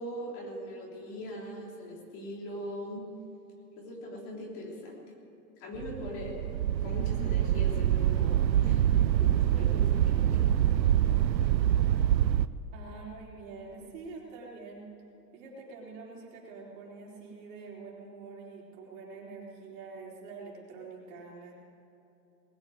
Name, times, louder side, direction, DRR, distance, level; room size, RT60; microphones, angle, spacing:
voice 1, 0.0-3.0 3.8-5.1 5.6-6.4 6.8-8.3 8.6-10.5, equal, 35° left, -1 dB, 3.5 m, -41 dB
sound 1, 5.7-12.5, right 11 dB, 85° right, 0.7 m, -25 dB
voice 2, 12.7-14.9 15.3-21.5, right 4 dB, 45° right, -3 dB, 4.2 m, -45 dB
20.0 x 7.4 x 9.4 m, 2.8 s
hypercardioid pair, 135°, 50 cm